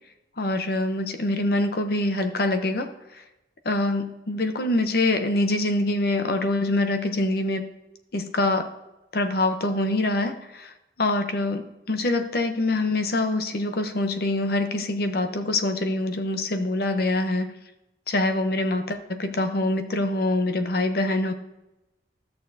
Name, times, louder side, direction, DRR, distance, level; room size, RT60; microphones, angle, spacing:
voice 1, 0.4-2.9 3.6-7.7 8.1-8.7 9.1-10.7 11.0-17.5 18.1-21.3, left 2 dB, 55° left, 7 dB, 0.8 m, -25 dB
13.0 x 6.6 x 2.7 m, 0.95 s
head